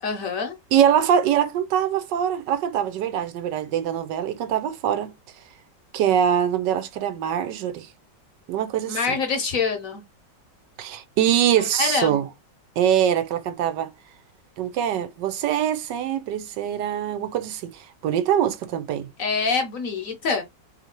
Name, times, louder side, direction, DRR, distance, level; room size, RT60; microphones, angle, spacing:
voice 1, 0.0-0.5 8.9-10.0 11.6-12.2 19.2-20.4, left 5 dB, 60° left, 1.0 m, -25 dB
voice 2, 0.7-5.1 5.9-7.9 8.5-9.0 10.8-12.3 12.8-13.9 14.6-19.1, right 9 dB, 75° right, 1.2 m, -23 dB
3.1 x 2.7 x 4.4 m
omnidirectional pair, 2.0 m